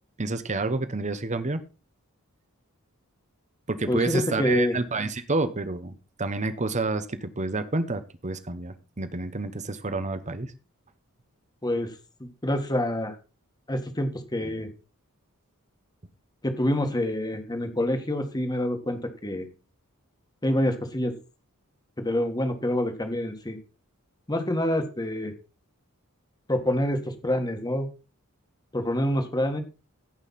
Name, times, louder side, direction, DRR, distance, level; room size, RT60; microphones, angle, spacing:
voice 1, 0.2-1.6 3.7-5.9 6.2-10.5, right 3 dB, 30° right, 11 dB, 1.0 m, -29 dB
voice 2, 3.9-4.8 11.6-11.9 12.2-13.2 13.7-14.7 16.4-19.5 20.4-21.1 22.0-23.6 24.3-25.3 26.5-27.9 28.7-29.6, left 1 dB, 20° left, 6 dB, 1.7 m, -27 dB
16.5 x 5.6 x 4.2 m, 0.32 s
head